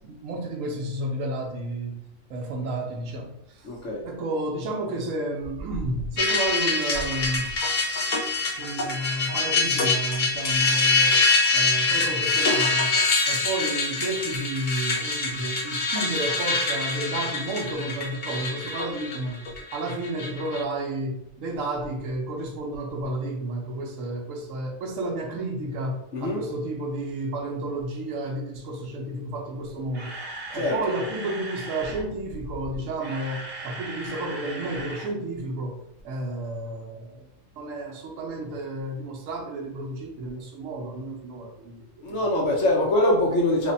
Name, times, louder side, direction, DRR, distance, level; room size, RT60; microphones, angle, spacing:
voice 1, 0.0-2.0 2.3-3.7 4.0-7.5 8.4-11.2 11.5-13.0 13.3-19.4 19.7-30.2 30.5-37.3 37.6-41.8 42.1-42.3, right 1 dB, 85° right, 2 dB, 1.1 m, -31 dB
voice 2, 3.6-4.0 26.1-26.4 30.5-30.9 42.0-43.7, left 1 dB, 75° left, -3 dB, 1.3 m, -23 dB
sound 1, 6.2-20.6, left 3 dB, 50° left, 0.7 m, -25 dB
Camera, 29.8-32.0 32.8-35.1 35.4-35.5 36.0-36.1, right 2 dB, 45° right, 0.9 m, -38 dB
3.3 x 2.1 x 3.9 m, 0.80 s
omnidirectional pair, 1.3 m